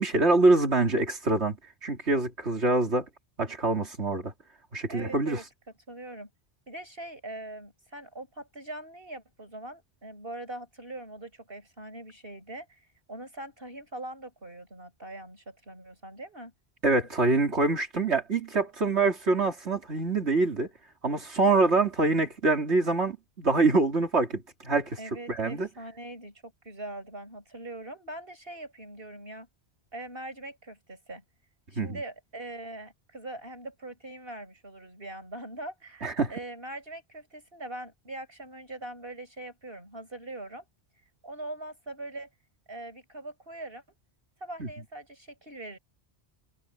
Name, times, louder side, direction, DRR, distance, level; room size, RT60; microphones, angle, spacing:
voice 1, 0.0-1.6 1.8-3.1 3.4-4.3 4.7-5.4 16.8-20.7 21.0-25.0 25.3-25.7 31.8-32.0 36.0-36.3 44.6-44.7, right 3 dB, 90° right, 3.2 m, -25 dB
voice 2, 4.9-5.4 5.9-6.3 6.7-12.8 13.1-16.5 25.0-29.5 29.9-31.2 31.7-40.7 41.2-42.3 42.7-43.8 44.4-45.8, right 2 dB, 60° right, 7.4 m, -42 dB
omnidirectional pair, 1.1 m